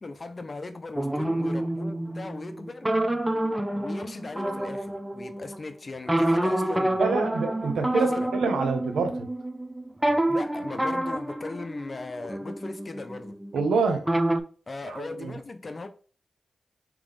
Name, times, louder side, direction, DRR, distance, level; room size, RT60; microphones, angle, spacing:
voice 1, 0.0-2.9 3.7-7.0 8.0-8.3 10.3-13.4 14.7-15.9, left 3 dB, 50° left, 0.6 m, -38 dB
sound 1, 0.9-5.6 6.1-13.7 14.1-14.4, right 1 dB, 15° right, 0.5 m, -28 dB
voice 2, 7.0-9.3 13.5-14.1 14.8-15.4, right 4 dB, 90° right, 0.7 m, -27 dB
3.7 x 3.0 x 3.5 m
cardioid pair, 40°, 0 cm